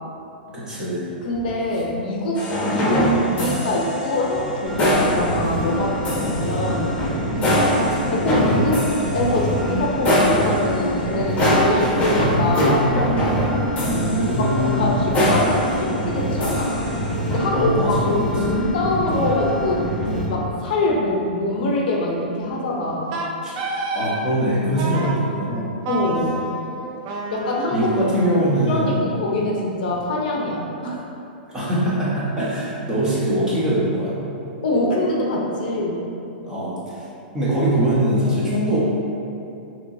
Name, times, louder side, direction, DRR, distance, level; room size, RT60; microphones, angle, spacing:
voice 1, 0.5-1.1 7.6-8.1 13.8-14.9 17.5-18.1 18.5-18.6 23.4-23.5 23.9-25.7 27.7-29.0 31.5-34.2 36.4-37.1 37.3-38.8, right 1 dB, 15° right, -9 dB, 1.1 m, -22 dB
voice 2, 1.2-7.0 8.1-8.8 9.1-12.9 14.4-16.7 17.3-17.7 18.1-19.8 20.3-23.2 25.9-26.5 27.3-28.0 28.7-31.1 34.6-36.0, left 2 dB, 65° left, -2 dB, 0.6 m, -24 dB
sound 1, 2.3-17.5, equal, 25° left, 1.1 m, -23 dB
sound 2, 4.6-20.3, equal, 80° right, 1.1 m, -26 dB
Wind instrument woodwind instrument, 23.1-24.2 24.8-25.2 25.8-28.8, right 2 dB, 45° right, 0.5 m, -29 dB
4.4 x 3.0 x 2.7 m, 2.8 s
hypercardioid pair, 125°, 5 cm